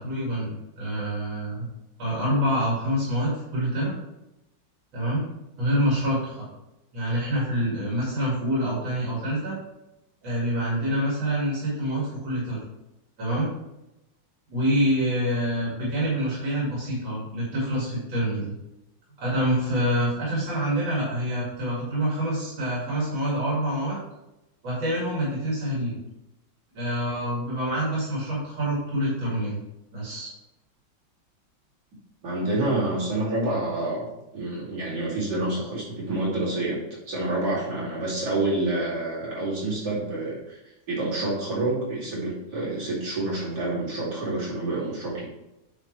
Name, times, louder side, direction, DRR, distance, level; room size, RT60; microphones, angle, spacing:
voice 1, 0.0-1.7 2.0-4.0 4.9-5.2 5.6-6.5 6.9-9.6 10.2-12.6 13.2-13.5 14.5-18.5 19.2-24.0 24.6-26.0 26.7-29.6 29.9-30.3, equal, 80° right, -6 dB, 3.0 m, -26 dB
voice 2, 32.2-34.1 34.3-40.6 40.9-45.3, right 2 dB, 60° right, -8 dB, 3.4 m, -28 dB
8.7 x 5.3 x 3.2 m, 0.92 s
omnidirectional pair, 2.0 m